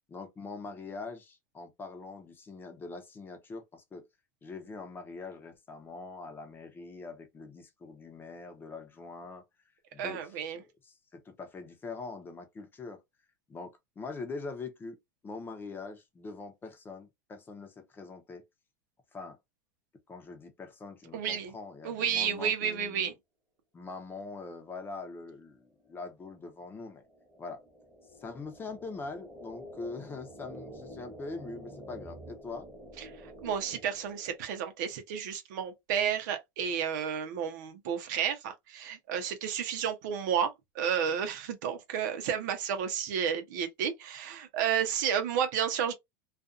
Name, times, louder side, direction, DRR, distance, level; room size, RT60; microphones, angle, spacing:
voice 1, 0.1-4.1 4.4-13.0 13.5-15.0 15.2-18.4 19.1-19.4 20.1-23.1 23.7-27.0 27.4-27.6 28.2-32.7, left 3 dB, 20° left, 0.7 m, -43 dB
voice 2, 10.0-10.6 21.1-21.5 21.8-23.1 33.4-45.9, right 8 dB, 75° right, 0.8 m, -31 dB
sound 1, 25.9-34.7, equal, 5° right, 1.2 m, -49 dB
2.5 x 2.4 x 2.5 m
supercardioid pair, 125°, 10 cm